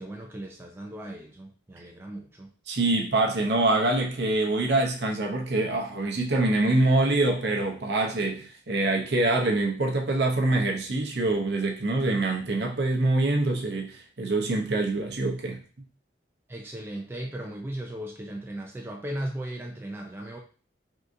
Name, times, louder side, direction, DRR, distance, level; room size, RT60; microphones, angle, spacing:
voice 1, 0.0-2.5 16.5-20.4, right 1 dB, 10° right, 0 dB, 0.3 m, -37 dB
voice 2, 2.7-15.6, right 2 dB, 65° right, 2 dB, 0.7 m, -25 dB
3.6 x 2.7 x 2.5 m, 0.39 s
head